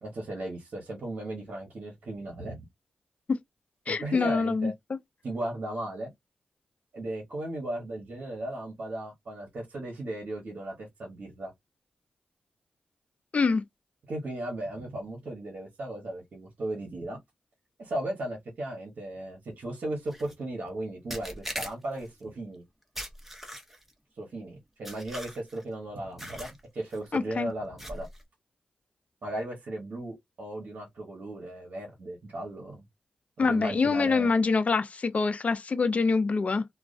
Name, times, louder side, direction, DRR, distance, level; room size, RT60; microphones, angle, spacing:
voice 1, 0.0-2.7 3.9-4.7 5.2-6.1 6.9-11.5 14.1-17.2 17.8-22.6 24.2-28.1 29.2-32.8 33.4-34.3, right 1 dB, 75° right, 0.9 m, -36 dB
voice 2, 3.9-4.7 13.3-13.6 27.1-27.5 33.4-36.7, left 4 dB, 55° left, 0.4 m, -25 dB
sound 1, 20.1-20.3 21.1-22.1 23.0-23.9 24.9-25.6 26.2-26.6 26.9-27.2 27.8-28.2, equal, 10° right, 0.8 m, -40 dB
2.3 x 2.2 x 2.4 m
cardioid pair, 40°, 3 cm